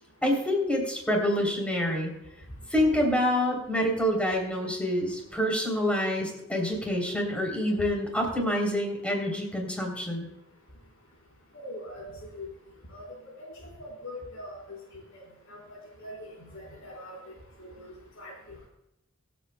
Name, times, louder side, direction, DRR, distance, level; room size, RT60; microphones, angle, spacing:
voice 1, 0.2-2.1 2.7-10.3, left 1 dB, 5° left, 0 dB, 3.2 m, -27 dB
voice 2, 11.5-12.5 12.9-13.1 13.6-15.2 15.5-17.3 17.6-18.3, left 1 dB, 90° left, -4 dB, 3.7 m, -43 dB
25.0 x 8.3 x 2.2 m, 0.85 s
head